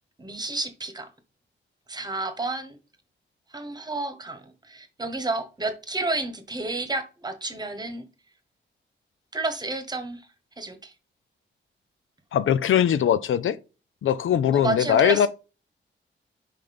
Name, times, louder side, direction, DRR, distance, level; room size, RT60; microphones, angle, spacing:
voice 1, 0.2-1.1 1.9-2.8 3.5-8.1 9.3-10.3 10.6-10.9 14.5-15.3, right 2 dB, 20° right, 1.2 m, -31 dB
voice 2, 12.3-13.6 14.0-15.3, left 9 dB, 90° left, 0.6 m, -21 dB
5.8 x 5.0 x 5.3 m
wide cardioid pair, 165°, 20 cm